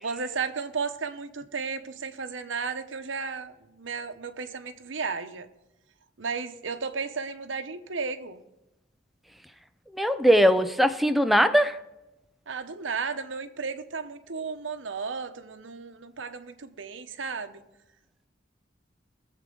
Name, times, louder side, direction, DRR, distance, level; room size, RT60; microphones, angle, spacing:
voice 1, 0.0-5.5 6.2-8.4 12.5-17.6, right 5 dB, 80° right, 8 dB, 0.9 m, -34 dB
voice 2, 9.9-11.8, equal, ahead, 9 dB, 0.5 m, -20 dB
20.0 x 7.4 x 3.8 m, 0.94 s
head